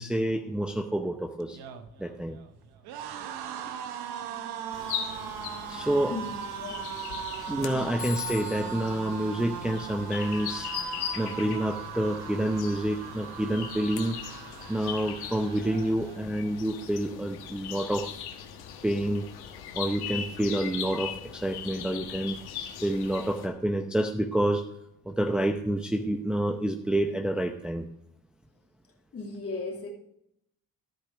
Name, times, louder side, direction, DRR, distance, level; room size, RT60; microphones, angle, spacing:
voice 1, 0.0-1.6 2.0-2.4 5.7-6.2 7.5-10.7 11.2-14.2 14.7-18.2 18.8-19.3 19.8-22.4 22.8-24.6 25.1-27.9, right 1 dB, 5° right, 4 dB, 0.7 m, -28 dB
sound 1, 1.4-16.6 16.9-17.2 17.4-18.2, right 8 dB, 85° right, 1.0 m, -39 dB
sound 2, 4.7-23.5, left 8 dB, 90° left, 1.4 m, -40 dB
voice 2, 6.0-6.3 6.6-7.2 7.5-7.9 22.8-22.9 29.1-29.9, left 3 dB, 40° left, -1 dB, 2.8 m, -37 dB
Telephone, 8.0-10.5, left 10 dB, 55° left, 1.1 m, -42 dB
13.5 x 5.2 x 6.1 m, 0.76 s
cardioid pair, 100°, 37 cm